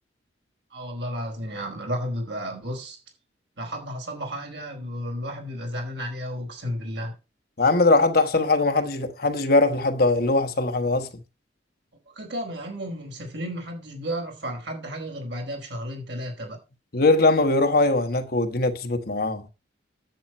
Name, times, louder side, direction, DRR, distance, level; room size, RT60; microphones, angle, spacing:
voice 1, 0.7-3.0 3.6-7.1 12.1-16.6, equal, 65° right, 4.5 m, -33 dB
voice 2, 7.6-11.1 16.9-19.5, left 2 dB, 50° left, 1.2 m, -21 dB
10.5 x 8.0 x 4.4 m
head